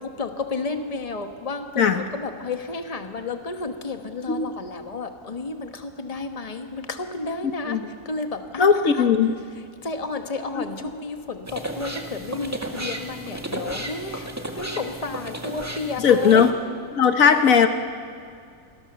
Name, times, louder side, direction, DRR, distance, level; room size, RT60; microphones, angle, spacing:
voice 1, 0.0-1.7 1.9-7.8 8.0-8.7 8.9-9.1 9.8-14.3 14.5-16.5, left 3 dB, 25° left, 6 dB, 1.4 m, -31 dB
voice 2, 7.4-7.8 8.6-9.4 10.6-10.7 16.0-16.5 16.9-17.7, left 6 dB, 75° left, 8 dB, 1.5 m, -18 dB
sound 1, 11.4-16.5, right 1 dB, 10° right, 1.9 m, -33 dB
27.0 x 20.5 x 6.9 m, 2.2 s
omnidirectional pair, 1.4 m